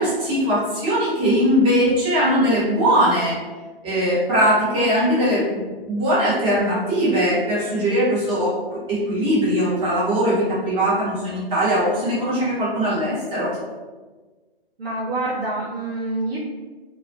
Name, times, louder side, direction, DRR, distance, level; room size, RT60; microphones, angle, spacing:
voice 1, 0.0-3.4 3.8-13.6, equal, 15° right, -9 dB, 0.8 m, -20 dB
voice 2, 14.8-16.4, right 2 dB, 75° right, -6 dB, 0.7 m, -26 dB
2.3 x 2.2 x 2.5 m, 1.3 s
figure-of-eight pair, 125°, 30 cm